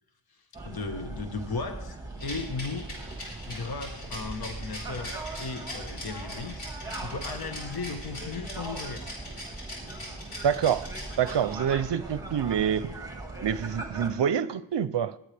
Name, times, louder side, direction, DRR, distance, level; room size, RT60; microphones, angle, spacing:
sound 1, 0.5-14.1, right 2 dB, 5° right, 1.7 m, -40 dB
voice 1, 0.6-2.9 3.5-6.7 7.0-9.1, left 4 dB, 50° left, 1.2 m, -36 dB
Rattle, 2.2-11.7, left 1 dB, 85° left, 4.7 m, -41 dB
voice 2, 10.4-10.9 11.2-12.9 13.4-15.2, right 8 dB, 60° right, 0.7 m, -26 dB
21.0 x 9.1 x 3.4 m
wide cardioid pair, 100°, 49 cm